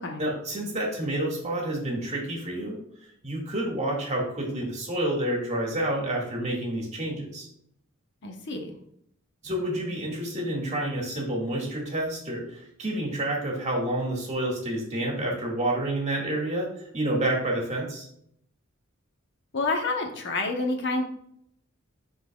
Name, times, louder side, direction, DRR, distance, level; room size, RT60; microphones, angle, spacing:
voice 1, 0.2-2.8 3.2-7.5 9.4-16.7 16.9-18.1, right 1 dB, 35° right, -2 dB, 2.0 m, -29 dB
voice 2, 8.2-8.7 19.5-21.0, left 3 dB, 60° left, 3 dB, 1.0 m, -28 dB
11.0 x 4.0 x 2.4 m, 0.71 s
head